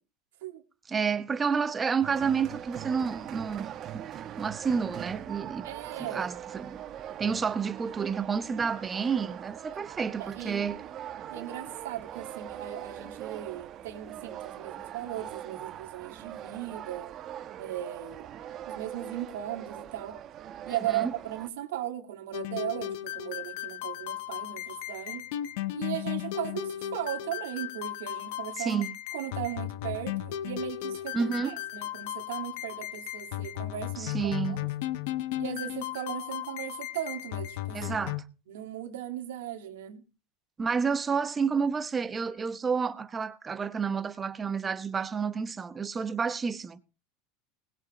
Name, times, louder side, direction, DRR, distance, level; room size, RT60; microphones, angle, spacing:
voice 1, 0.9-5.7 6.0-6.8 7.2-10.8 20.7-21.1 28.6-28.9 31.1-31.6 34.0-34.7 37.7-38.2 40.6-46.8, right 6 dB, 20° right, 1.0 m, -30 dB
sound 1, 2.0-21.5, right 10 dB, 40° right, 1.1 m, -42 dB
voice 2, 5.6-6.3 10.2-10.7 11.3-17.1 17.6-18.3 18.7-20.2 20.6-25.3 25.7-28.8 29.1-34.7 35.4-38.0 38.5-40.1, right 12 dB, 85° right, 2.0 m, -37 dB
sound 2, 22.3-38.2, left 13 dB, 75° left, 1.0 m, -35 dB
20.0 x 7.4 x 4.2 m
supercardioid pair, 115°, 0 cm